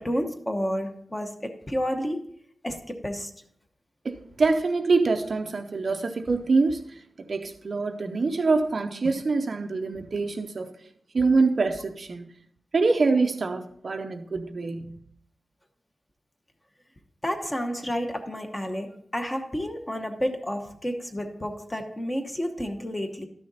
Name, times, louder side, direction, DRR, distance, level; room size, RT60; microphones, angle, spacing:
voice 1, 0.0-2.3 2.6-3.3 17.2-23.3, equal, 15° left, 0.9 m, -30 dB
voice 2, 4.0-6.8 7.3-10.7 11.1-12.2 12.7-14.9, right 3 dB, 45° right, 0.6 m, -25 dB
12.5 x 6.5 x 4.0 m
wide cardioid pair, 180°, 0 cm